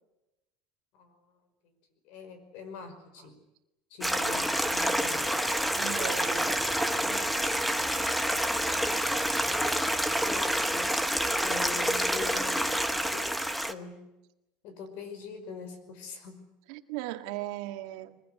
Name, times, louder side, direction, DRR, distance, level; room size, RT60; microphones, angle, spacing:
voice 1, 2.0-3.4 3.9-5.5 10.2-10.9 11.4-13.4 13.7-14.1 14.6-16.4, left 5 dB, 55° left, 5.3 m, -43 dB
Stream, 4.0-13.7, equal, ahead, 0.9 m, -28 dB
voice 2, 5.8-7.4 16.7-18.2, right 15 dB, 70° right, 1.9 m, -38 dB
22.5 x 21.0 x 9.5 m
cardioid pair, 180°, 3 cm